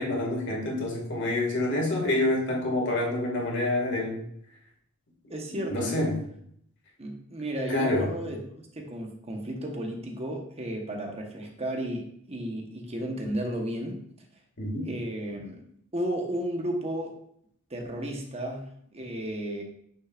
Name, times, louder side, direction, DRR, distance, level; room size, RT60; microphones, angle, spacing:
voice 1, 0.0-4.2 5.5-6.2 7.7-8.1 14.6-14.8, left 1 dB, 55° left, -2 dB, 2.2 m, -27 dB
voice 2, 5.3-6.1 7.0-8.4 8.7-14.0 14.8-15.6 15.9-17.1 17.7-19.6, right 1 dB, 30° right, 2 dB, 1.2 m, -33 dB
8.8 x 6.8 x 2.5 m, 0.69 s
head